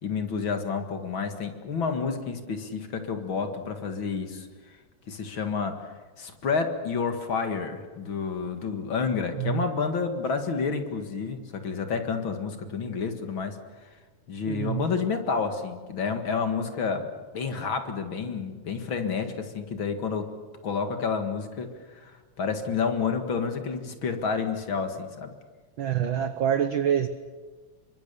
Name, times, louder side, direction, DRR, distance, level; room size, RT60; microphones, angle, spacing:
voice 1, 0.0-4.5 5.1-5.9 6.2-13.6 14.3-17.1 17.3-20.3 20.6-25.3, left 5 dB, 45° left, 6 dB, 2.4 m, -29 dB
voice 2, 9.3-9.7 14.5-14.9 25.8-27.1, right 9 dB, 65° right, 10 dB, 1.3 m, -26 dB
27.0 x 24.0 x 6.9 m, 1.4 s
omnidirectional pair, 3.3 m